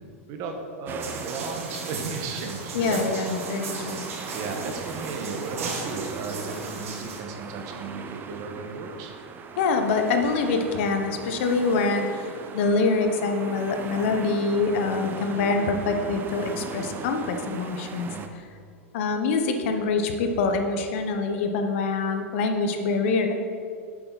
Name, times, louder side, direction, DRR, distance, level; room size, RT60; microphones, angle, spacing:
voice 1, 0.3-3.0 3.5-3.8 4.3-9.1 16.5-17.1 18.0-18.3, right 4 dB, 50° right, 3 dB, 1.5 m, -35 dB
sound 1, 0.9-18.3, right 5 dB, 30° right, 0.7 m, -39 dB
sound 2, 1.0-7.2, right 4 dB, 80° right, 1.9 m, -37 dB
voice 2, 2.7-4.1 9.6-18.1 18.9-23.3, left 4 dB, 65° left, 5 dB, 1.2 m, -25 dB
Piano, 15.4-17.7, left 3 dB, 80° left, 1.5 m, -42 dB
10.0 x 7.8 x 4.2 m, 2.3 s
hypercardioid pair, 110°, 7 cm